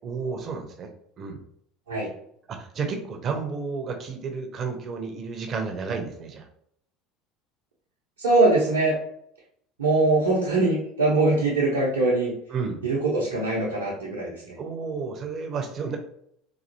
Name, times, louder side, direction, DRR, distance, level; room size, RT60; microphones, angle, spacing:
voice 1, 0.0-0.9 1.2-1.4 2.5-6.4 12.5-12.8 14.6-16.0, right 5 dB, 40° right, 4 dB, 0.8 m, -31 dB
voice 2, 8.2-8.9 9.8-12.3 12.8-14.5, right 2 dB, 80° right, -7 dB, 0.9 m, -22 dB
4.1 x 2.8 x 2.7 m, 0.69 s
hypercardioid pair, 70°, 0 cm